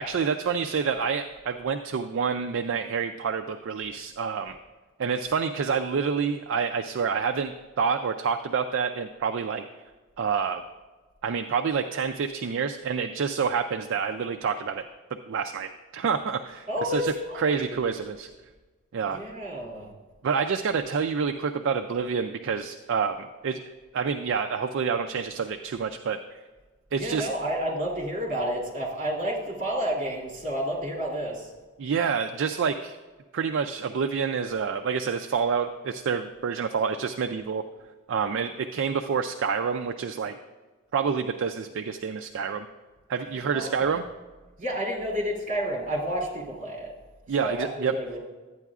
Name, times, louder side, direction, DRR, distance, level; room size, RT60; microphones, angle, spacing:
voice 1, 0.0-4.6 5.0-9.6 10.2-10.6 11.2-14.9 15.3-17.1 17.4-18.3 18.9-19.2 20.2-26.2 26.9-27.3 31.8-33.0 33.3-37.7 38.1-40.4 40.9-42.7 43.1-44.0 47.3-48.0, right 6 dB, 55° right, 6 dB, 0.3 m, -28 dB
voice 2, 16.7-17.8 19.1-19.9 27.0-31.5 43.5-43.9 44.6-46.9 47.4-48.2, equal, 40° right, -4 dB, 2.5 m, -30 dB
12.0 x 9.0 x 2.4 m, 1.3 s
head